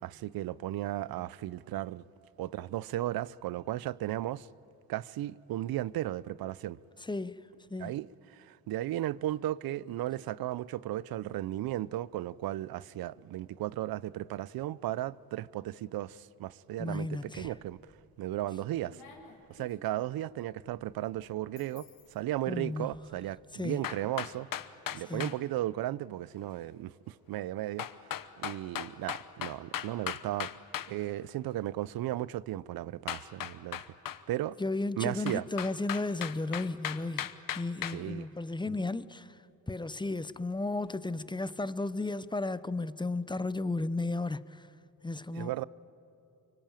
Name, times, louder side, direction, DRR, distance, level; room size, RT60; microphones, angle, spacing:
voice 1, 0.0-2.0 2.4-4.5 4.9-6.8 7.8-17.8 18.2-19.0 19.5-24.5 24.9-27.9 28.4-30.5 30.9-33.9 34.3-34.6 35.0-35.4 37.9-38.3 38.7-38.8 45.3-45.6, right 14 dB, 75° right, 0.6 m, -35 dB
voice 2, 7.0-7.4 7.7-7.9 16.8-17.5 22.5-22.9 23.5-23.8 25.1-25.3 34.6-39.4 39.7-44.7 45.0-45.6, left 2 dB, 15° left, 0.8 m, -34 dB
sound 1, 17.6-17.9 18.3-23.0, left 5 dB, 90° left, 3.6 m, -57 dB
sound 2, 23.8-25.4 27.8-30.9 33.1-34.2 35.3-38.0, left 10 dB, 65° left, 1.1 m, -37 dB
24.5 x 24.0 x 9.0 m
cardioid pair, 70°, 36 cm